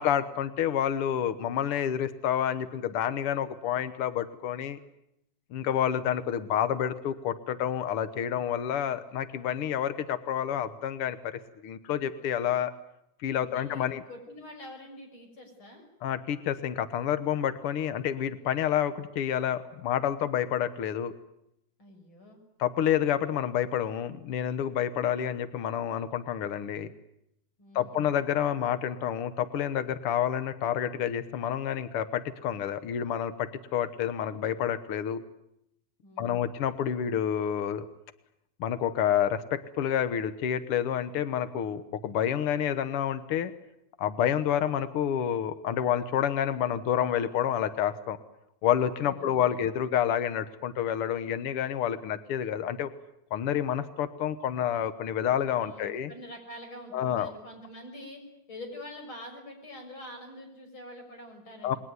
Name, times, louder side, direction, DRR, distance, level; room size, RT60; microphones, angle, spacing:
voice 1, 0.0-4.8 5.5-12.7 13.2-14.0 16.0-21.1 22.6-26.9 27.7-35.2 36.2-37.9 38.6-43.5 44.0-48.2 48.6-52.9 53.3-56.1 56.9-57.3 61.6-61.7, left 9 dB, 75° left, 11 dB, 1.3 m, -29 dB
voice 2, 13.3-15.9 21.8-22.4 27.6-28.0 36.0-36.4 49.0-49.5 55.6-58.2 58.5-61.8, left 1 dB, 30° left, 4 dB, 7.0 m, -45 dB
28.0 x 21.5 x 9.6 m, 0.80 s
omnidirectional pair, 4.2 m